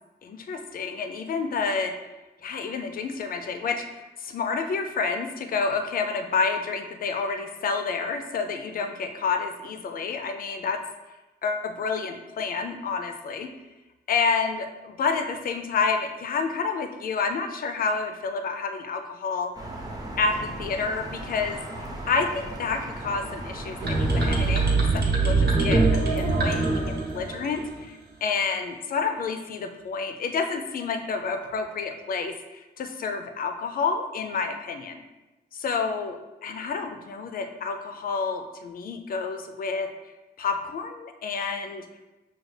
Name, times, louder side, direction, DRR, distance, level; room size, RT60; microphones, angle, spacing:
voice 1, 0.2-1.9 2.4-10.8 11.4-13.5 14.1-19.5 20.2-21.6 22.1-35.0 35.5-39.9 40.4-41.8, left 5 dB, 60° left, 6 dB, 0.4 m, -29 dB
sound 1, 19.5-24.7, right 1 dB, 20° right, 0.7 m, -37 dB
sound 2, 23.8-27.8, right 3 dB, 90° right, 0.9 m, -23 dB
6.3 x 2.3 x 3.2 m, 1.1 s
wide cardioid pair, 145°, 16 cm